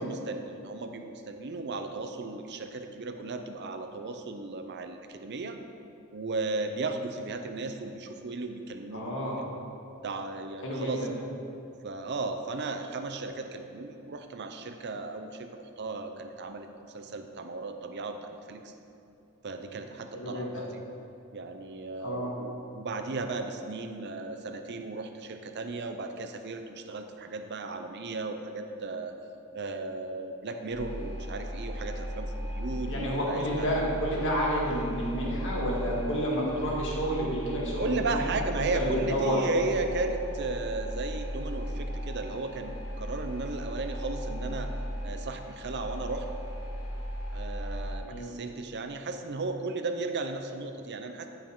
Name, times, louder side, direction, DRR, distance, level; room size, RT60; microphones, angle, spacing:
voice 1, 0.0-5.6 6.1-9.3 10.0-11.1 11.8-16.7 16.9-18.7 19.4-20.8 21.3-29.1 29.5-33.7 37.8-44.7 45.0-46.3 47.3-51.3, right 3 dB, 50° right, 6 dB, 0.6 m, -35 dB
voice 2, 8.9-9.4 10.6-11.1 20.1-20.6 22.0-22.3 32.9-38.3 38.6-39.4 48.1-48.3, equal, 55° left, -4 dB, 1.9 m, -30 dB
sound 1, 30.7-48.0, equal, 85° left, 1.5 m, -37 dB
13.5 x 5.5 x 3.7 m, 2.7 s
head